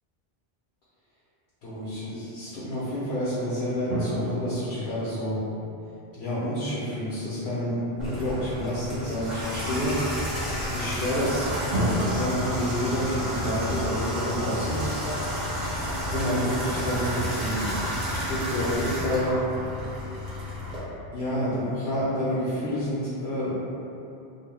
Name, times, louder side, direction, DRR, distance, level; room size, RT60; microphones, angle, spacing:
voice 1, 1.6-5.4 6.2-10.4 10.7-11.5 12.0-15.3 16.0-19.4 21.1-23.5, equal, 70° left, -10 dB, 0.8 m, -29 dB
sound 1, 3.9-6.8 11.7-12.0, equal, 85° right, 0.9 m, -32 dB
Water tap faucet / Bathtub (filling or washing), 8.0-20.8, equal, 45° right, 0.8 m, -31 dB
2.4 x 2.2 x 3.2 m, 2.8 s
omnidirectional pair, 1.1 m